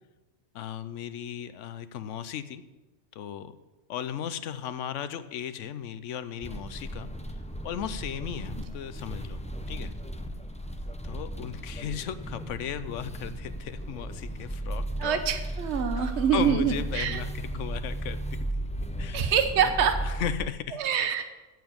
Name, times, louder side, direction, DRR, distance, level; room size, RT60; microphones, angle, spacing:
voice 1, 0.5-2.6 3.1-3.6 3.9-9.4 9.7-9.9 11.0-15.2 16.0-18.2 18.6-18.7 19.0-19.3 19.6-19.7 20.0-20.8, left 9 dB, 80° left, 12 dB, 1.0 m, -36 dB
sound 1, 6.4-20.5, right 1 dB, 10° left, 0.4 m, -35 dB
voice 2, 15.0-17.2 19.1-20.0 20.8-21.2, right 8 dB, 65° right, 8 dB, 1.1 m, -25 dB
9.4 x 7.0 x 8.8 m, 1.1 s
omnidirectional pair, 1.3 m